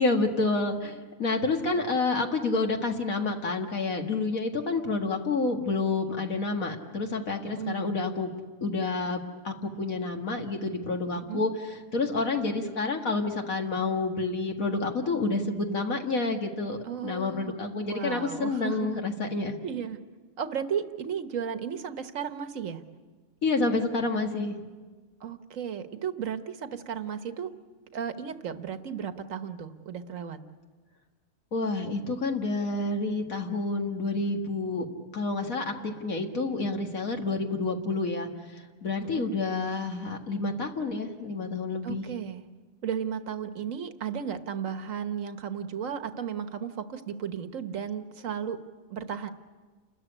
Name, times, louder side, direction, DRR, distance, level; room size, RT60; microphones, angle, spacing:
voice 1, 0.0-8.3 8.6-11.5 11.9-19.6 23.4-24.6 31.5-34.9 35.1-42.0, left 3 dB, 60° left, 3 dB, 2.2 m, -29 dB
voice 2, 7.6-7.9 11.1-11.4 16.8-17.5 17.9-18.9 19.6-20.0 20.4-22.8 25.2-27.5 27.9-30.4 39.1-39.3 41.8-42.4 42.8-48.6 48.9-49.3, right 7 dB, 60° right, 10 dB, 1.5 m, -34 dB
29.5 x 13.5 x 10.0 m, 1.4 s
omnidirectional pair, 1.6 m